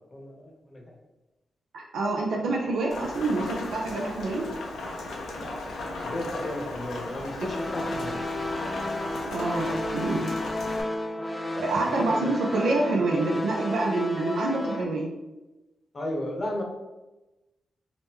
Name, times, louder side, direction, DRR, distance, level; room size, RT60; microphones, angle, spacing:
voice 1, 0.1-0.8 5.4-5.5 6.0-8.2 11.9-12.3 15.9-16.6, left 1 dB, 45° left, 1 dB, 0.8 m, -34 dB
voice 2, 1.7-4.5 9.3-10.3 11.6-15.1, right 2 dB, 80° right, -1 dB, 0.4 m, -27 dB
Rain, 2.9-10.8, left 2 dB, 80° left, 0.5 m, -36 dB
sound 1, 7.5-14.8, left 1 dB, 25° left, 0.4 m, -32 dB
2.9 x 2.1 x 3.5 m, 1.0 s
supercardioid pair, 45°, 0 cm